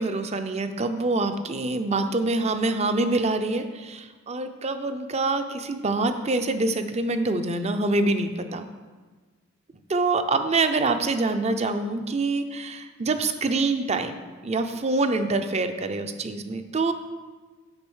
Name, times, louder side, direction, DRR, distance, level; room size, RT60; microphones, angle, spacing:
voice 1, 0.0-8.7 9.9-14.1 14.4-16.9, right 3 dB, 35° right, 8 dB, 0.6 m, -25 dB
8.8 x 5.3 x 6.3 m, 1.3 s
head